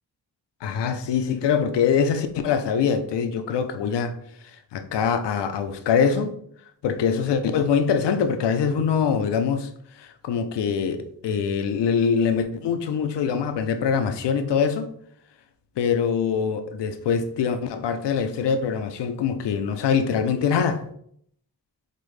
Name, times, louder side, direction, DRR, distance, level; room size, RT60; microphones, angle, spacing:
voice 1, 0.6-4.1 4.7-6.4 6.8-9.7 10.0-14.9 15.8-20.9, left 6 dB, 85° left, 0.5 m, -23 dB
5.2 x 2.0 x 3.2 m
wide cardioid pair, 100°, 40 cm